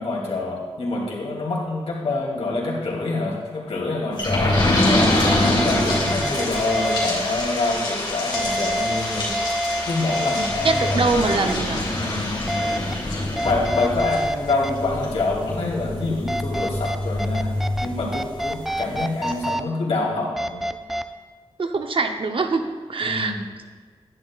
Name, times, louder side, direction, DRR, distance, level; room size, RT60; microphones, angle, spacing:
voice 1, 0.0-4.8 5.4-9.6 9.9-11.0 11.9-12.5 13.4-20.7 23.0-23.4, left 2 dB, 75° left, -4 dB, 2.7 m, -26 dB
sound 1, 4.2-18.5 18.9-19.0 19.3-19.4, left 1 dB, 45° left, 3.0 m, -25 dB
sound 2, 4.7-4.8 5.3-7.1 8.3-10.9 11.3-11.5 12.5-12.9 13.4-14.7 16.3-17.9 18.1-19.6 20.4-21.0, equal, 5° right, 0.4 m, -27 dB
voice 2, 10.6-11.8 21.6-23.4, right 3 dB, 60° right, 5 dB, 0.8 m, -23 dB
10.5 x 10.5 x 2.4 m, 1.6 s
wide cardioid pair, 95°, 10 cm